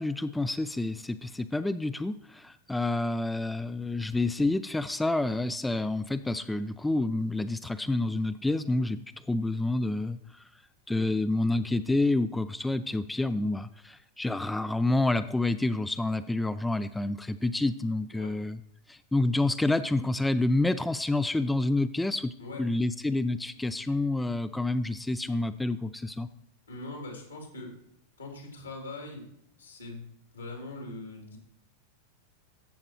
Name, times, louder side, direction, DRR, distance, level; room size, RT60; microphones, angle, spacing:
voice 1, 0.0-9.0 9.3-10.5 10.9-18.6 18.9-22.3 22.6-26.3, left 2 dB, 5° left, 13 dB, 0.3 m, -28 dB
voice 2, 26.7-27.8 28.2-29.3 29.6-31.4, left 2 dB, 75° left, 1 dB, 3.0 m, -42 dB
14.0 x 7.6 x 3.1 m, 0.75 s
figure-of-eight pair, 90°, 0 cm